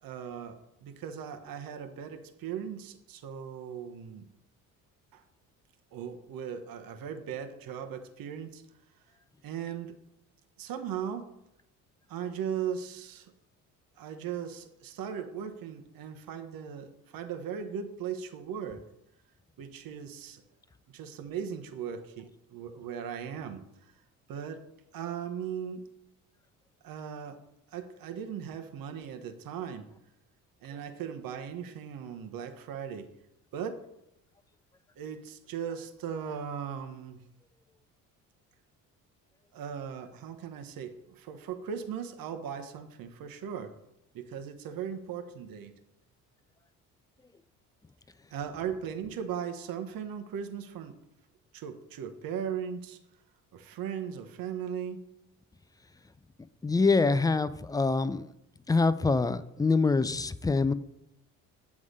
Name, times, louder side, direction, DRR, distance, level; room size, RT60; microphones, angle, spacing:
voice 1, 0.0-4.3 5.1-5.2 5.9-8.6 9.4-9.9 10.6-11.3 12.1-13.3 14.0-18.8 19.6-20.4 20.9-23.7 24.3-25.9 26.8-27.4 27.7-29.9 30.6-33.1 33.5-33.8 35.0-37.2 39.5-43.7 44.1-45.7 48.3-51.0 51.5-53.0 53.5-55.1, right 8 dB, 60° right, 6 dB, 1.0 m, -38 dB
voice 2, 56.6-58.3 58.7-60.7, left 3 dB, 10° left, 14 dB, 0.4 m, -25 dB
8.3 x 3.6 x 6.5 m, 0.82 s
supercardioid pair, 60°, 39 cm